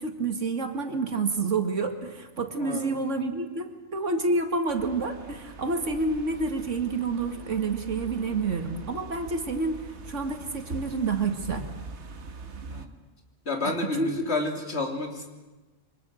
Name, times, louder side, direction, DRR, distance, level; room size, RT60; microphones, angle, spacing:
voice 1, 0.0-11.7 13.6-14.3, right 3 dB, 85° right, 5 dB, 2.3 m, -29 dB
voice 2, 2.6-3.0 12.7-12.9 13.5-15.3, left 3 dB, 60° left, 2 dB, 3.5 m, -30 dB
sound 1, 4.7-12.9, right 3 dB, 70° right, 1.7 m, -42 dB
28.0 x 24.5 x 6.5 m, 1.2 s
omnidirectional pair, 1.2 m